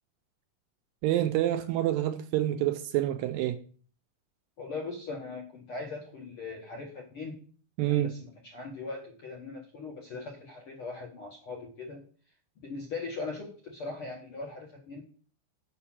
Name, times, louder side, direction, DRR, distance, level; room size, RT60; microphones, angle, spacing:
voice 1, 1.0-3.6 7.8-8.1, right 13 dB, 80° right, 2.1 m, -27 dB
voice 2, 4.6-7.4 7.8-12.0 12.6-15.0, left 3 dB, 65° left, 1.3 m, -40 dB
6.7 x 5.8 x 7.3 m
omnidirectional pair, 4.6 m